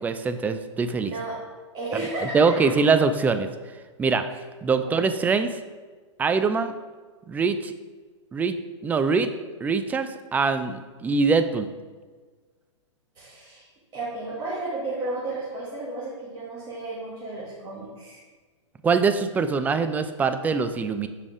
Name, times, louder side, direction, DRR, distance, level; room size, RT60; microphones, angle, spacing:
voice 1, 0.0-1.1 1.9-2.0 2.3-3.5 4.0-4.3 4.6-5.5 6.2-6.7 7.3-7.7 8.3-8.6 8.8-9.3 9.6-11.7 18.8-21.1, right 4 dB, 10° right, 10 dB, 0.3 m, -23 dB
voice 2, 1.0-1.4 1.7-2.4 4.8-5.0 13.1-13.7 13.9-18.2, right 2 dB, 25° right, -7 dB, 1.8 m, -33 dB
5.2 x 5.0 x 4.7 m, 1.4 s
hypercardioid pair, 115°, 16 cm